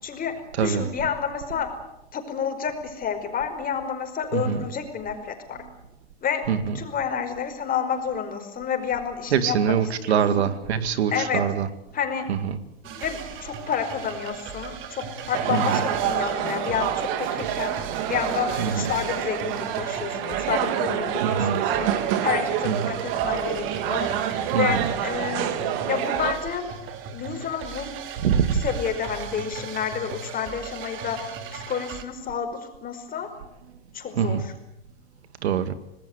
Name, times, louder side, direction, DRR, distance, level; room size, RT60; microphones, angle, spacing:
voice 1, 0.0-1.7 2.1-5.6 6.2-10.5 11.1-11.4 11.9-12.3 12.8-17.8 18.1-24.1 24.5-25.5 25.9-26.7 27.1-27.9 28.5-33.3 33.9-34.5, left 7 dB, 25° left, 5.1 m, -30 dB
voice 2, 9.3-11.7 12.3-12.4 15.5-15.6 18.6-18.7 21.2-21.6 22.7-22.9 24.5-24.8 28.2-28.6 34.2-34.4 35.4-35.7, right 7 dB, 90° right, 2.3 m, -23 dB
sound 1, 12.8-32.0, right 7 dB, 40° right, 2.9 m, -38 dB
sound 2, 15.3-26.3, right 10 dB, 60° right, 2.8 m, -27 dB
26.5 x 19.5 x 8.1 m
supercardioid pair, 120°, 32 cm